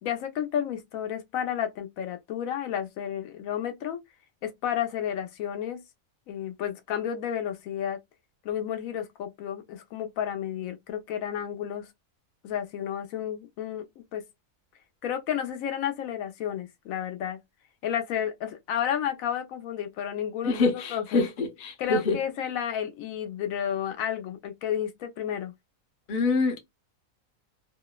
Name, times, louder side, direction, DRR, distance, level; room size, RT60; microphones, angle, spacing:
voice 1, 0.0-4.0 4.4-5.8 6.3-8.0 8.4-11.9 12.4-14.2 15.0-17.4 17.8-21.2 21.8-25.5, left 9 dB, 85° left, 1.0 m, -31 dB
voice 2, 20.4-22.2 26.1-26.6, left 3 dB, 50° left, 0.7 m, -25 dB
2.8 x 2.0 x 2.2 m
omnidirectional pair, 1.4 m